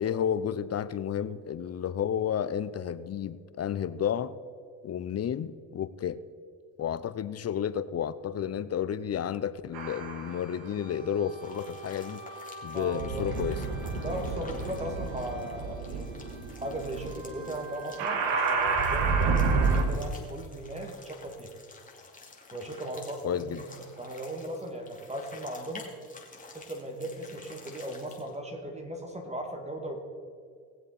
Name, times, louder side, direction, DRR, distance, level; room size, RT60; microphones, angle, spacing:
voice 1, 0.0-4.3 4.8-6.2 6.8-12.2 12.6-13.6 23.2-23.6, left 9 dB, 35° left, 15 dB, 0.6 m, -31 dB
sound 1, 9.7-10.5 11.3-19.8, right 4 dB, 75° right, 1.9 m, -30 dB
sound 2, 11.4-28.4, left 3 dB, 20° left, 2.6 m, -51 dB
voice 2, 12.7-13.3 14.0-16.1 16.6-21.5 22.5-25.9 26.5-30.0, right 1 dB, 15° right, 3 dB, 2.4 m, -38 dB
19.0 x 7.6 x 4.3 m, 2.2 s
supercardioid pair, 75°, 44 cm